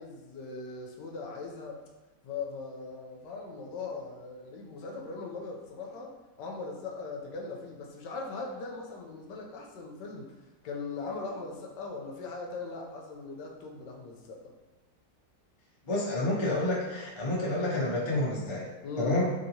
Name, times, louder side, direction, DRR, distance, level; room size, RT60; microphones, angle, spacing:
voice 1, 0.0-1.8 2.2-10.3 10.6-14.5 18.8-19.3, left 3 dB, 80° left, 0 dB, 1.2 m, -40 dB
voice 2, 15.9-18.7 19.0-19.3, left 1 dB, 50° left, -6 dB, 0.3 m, -29 dB
3.4 x 2.8 x 2.7 m, 1.2 s
omnidirectional pair, 1.9 m